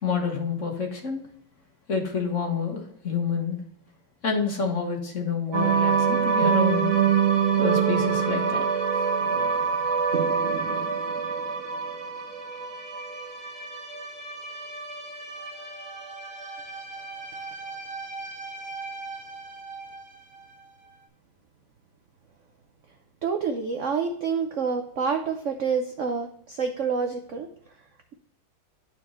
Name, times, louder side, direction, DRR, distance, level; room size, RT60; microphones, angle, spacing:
voice 1, 0.0-1.2 1.9-3.6 4.2-7.0 7.6-8.6, left 5 dB, 40° left, 2 dB, 1.6 m, -28 dB
sound 1, 5.5-20.0, right 6 dB, 35° right, 1.3 m, -26 dB
voice 2, 23.2-27.5, right 5 dB, 70° right, 5 dB, 0.7 m, -27 dB
12.0 x 4.4 x 3.0 m, 0.67 s
omnidirectional pair, 2.1 m